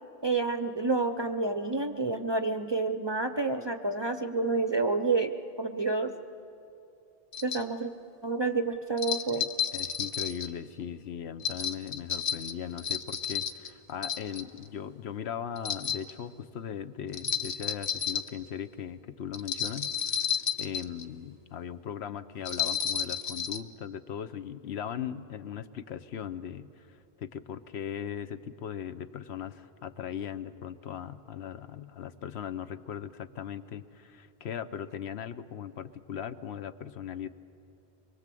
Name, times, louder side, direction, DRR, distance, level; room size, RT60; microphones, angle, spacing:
voice 1, 0.2-6.1 7.4-7.9 8.2-9.5, right 3 dB, 30° right, 8 dB, 0.5 m, -29 dB
sound 1, 7.3-7.6 9.0-10.5 11.4-13.7 14.0-14.6 15.6-16.1 17.1-18.3 19.3-21.0 22.4-23.6, left 7 dB, 40° left, 0.8 m, -31 dB
voice 2, 9.3-20.3 20.6-37.3, left 8 dB, 75° left, 11 dB, 1.0 m, -39 dB
23.5 x 22.5 x 7.6 m, 2.8 s
omnidirectional pair, 1.1 m